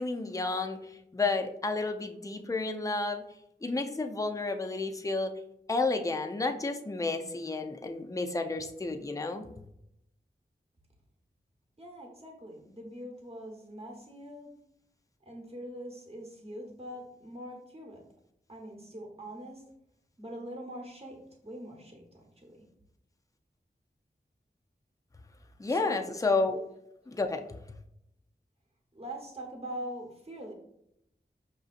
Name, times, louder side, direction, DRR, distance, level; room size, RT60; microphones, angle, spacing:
voice 1, 0.0-3.2 3.6-5.3 5.7-9.5 25.6-26.6 27.1-27.4, left 3 dB, 20° left, 5 dB, 0.4 m, -31 dB
voice 2, 11.8-14.5 15.2-18.0 18.5-19.6 20.2-22.7 25.7-26.0 26.5-26.6 27.0-27.2 28.9-30.5, right 1 dB, 35° right, 1 dB, 1.0 m, -43 dB
6.0 x 2.6 x 2.4 m, 0.80 s
wide cardioid pair, 60°, 18 cm